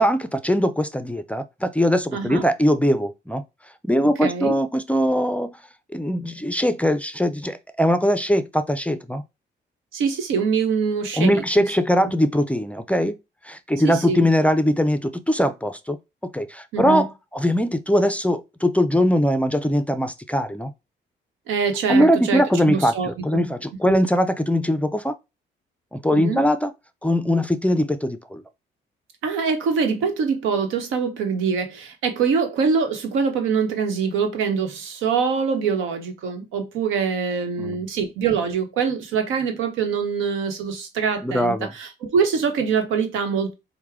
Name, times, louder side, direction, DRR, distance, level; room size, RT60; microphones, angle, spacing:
voice 1, 0.0-3.4 3.8-5.6 5.9-9.2 11.2-13.1 13.4-16.0 16.2-20.7 21.9-25.1 25.9-26.7 27.0-28.4 37.6-37.8 41.2-41.7, equal, 5° left, 0.4 m, -21 dB
voice 2, 2.1-2.4 4.2-4.5 9.9-11.4 13.8-14.3 16.7-17.0 21.5-23.5 23.8-24.0 26.1-26.4 29.2-43.5, right 6 dB, 90° right, 1.0 m, -24 dB
4.5 x 2.1 x 3.6 m
cardioid pair, 90°, 20 cm